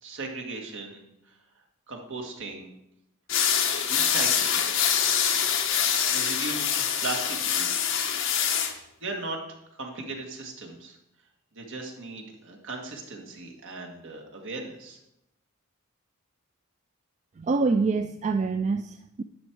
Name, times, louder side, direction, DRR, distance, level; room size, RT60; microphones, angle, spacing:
voice 1, 0.0-1.3 1.9-2.7 3.9-4.7 6.1-7.9 9.0-9.4 9.7-11.0 11.5-15.0, right 3 dB, 60° right, 1 dB, 1.9 m, -37 dB
sound 1, 3.3-8.7, left 8 dB, 60° left, 1.1 m, -25 dB
voice 2, 17.4-19.2, right 4 dB, 35° right, 8 dB, 0.3 m, -26 dB
11.0 x 6.3 x 4.7 m, 0.82 s
head